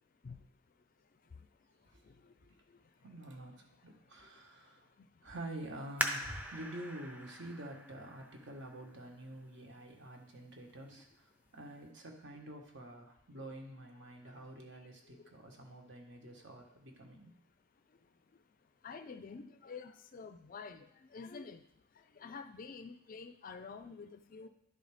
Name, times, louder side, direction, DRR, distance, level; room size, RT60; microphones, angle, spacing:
voice 1, 3.0-4.9 5.2-17.3, right 1 dB, 60° right, 2 dB, 1.4 m, -48 dB
sound 1, 6.0-9.4 10.0-10.1 10.7-11.1 11.5-11.6, right 1 dB, 10° right, 0.6 m, -41 dB
voice 2, 18.8-21.6 22.1-24.5, left 5 dB, 40° left, 9 dB, 0.4 m, -48 dB
11.5 x 4.0 x 4.9 m, 0.75 s
head